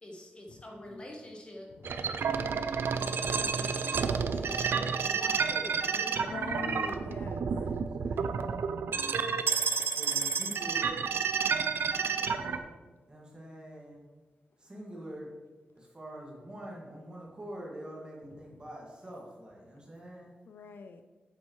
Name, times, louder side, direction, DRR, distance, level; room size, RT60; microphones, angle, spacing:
voice 1, 0.0-1.7 3.2-6.4, left 1 dB, 30° left, 0 dB, 1.2 m, -46 dB
voice 2, 1.8-2.1 6.2-7.5 8.9-9.0 20.5-21.0, left 4 dB, 70° left, 9 dB, 0.4 m, -42 dB
sound 1, 1.8-12.6, right 6 dB, 85° right, 0.4 m, -30 dB
voice 3, 6.7-8.3 10.0-11.0 12.2-12.7 13.1-14.0 14.6-15.3 15.8-20.3, right 1 dB, 25° right, -3 dB, 1.9 m, -46 dB
8.4 x 7.7 x 3.2 m, 1.3 s
wide cardioid pair, 145°, 4 cm